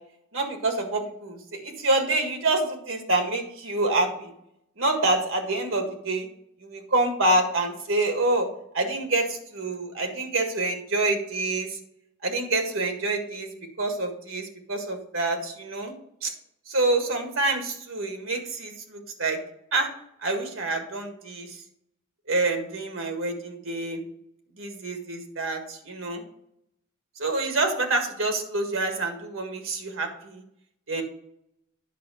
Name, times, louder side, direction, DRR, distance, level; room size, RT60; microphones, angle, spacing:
voice 1, 0.3-4.3 4.8-6.3 6.6-8.5 8.7-11.8 12.2-15.9 16.2-16.3 16.7-19.4 19.7-19.9 20.2-21.6 22.3-24.0 24.6-26.2 27.2-30.4 30.9-31.0, right 2 dB, 85° right, 4 dB, 1.8 m, -27 dB
10.5 x 5.5 x 5.0 m, 0.74 s
head